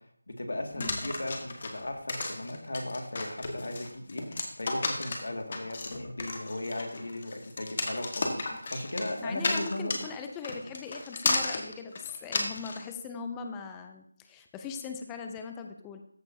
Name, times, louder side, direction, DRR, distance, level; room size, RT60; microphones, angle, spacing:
voice 1, 0.3-10.0, left 1 dB, 65° left, 3 dB, 2.0 m, -37 dB
sound 1, 0.8-12.8, left 3 dB, 40° left, 1.5 m, -33 dB
voice 2, 0.8-1.1 9.2-16.0, left 5 dB, 10° left, 5 dB, 0.5 m, -40 dB
14.0 x 6.8 x 2.7 m, 0.64 s
figure-of-eight pair, 165°, 0 cm